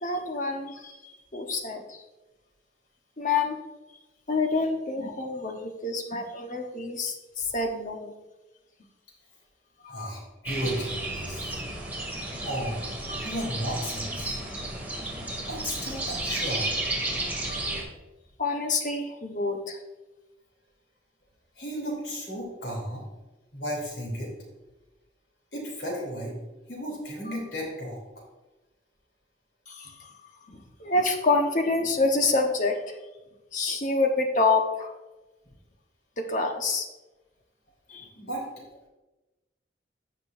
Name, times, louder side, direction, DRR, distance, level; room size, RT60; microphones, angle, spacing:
voice 1, 0.0-2.0 3.2-3.6 4.3-8.1 9.8-10.1 18.4-19.8 29.7-33.0 33.5-34.9 36.2-36.9 37.9-38.1, left 3 dB, 45° left, 3 dB, 1.1 m, -27 dB
voice 2, 9.9-11.6 12.4-14.4 15.5-16.7 17.5-17.9 21.5-23.0 23.5-24.3 25.5-26.3 26.7-28.0 37.9-38.4, equal, 65° left, -2 dB, 3.2 m, -34 dB
sound 1, 10.4-17.8, right 1 dB, 10° right, 1.8 m, -33 dB
16.0 x 5.4 x 2.6 m, 1.1 s
head